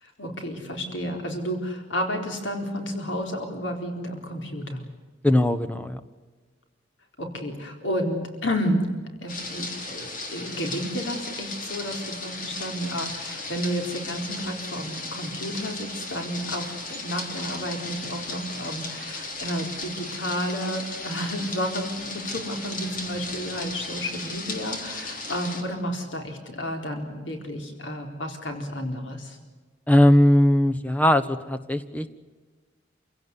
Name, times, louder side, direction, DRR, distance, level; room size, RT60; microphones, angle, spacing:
voice 1, 0.0-4.8 7.2-8.9 9.2-29.4, equal, 80° left, 3 dB, 4.2 m, -31 dB
voice 2, 5.2-6.0 29.9-32.1, left 1 dB, 10° left, 10 dB, 1.1 m, -19 dB
sound 1, 9.3-25.6, left 3 dB, 45° left, 3.6 m, -36 dB
27.5 x 17.0 x 9.6 m, 1.4 s
head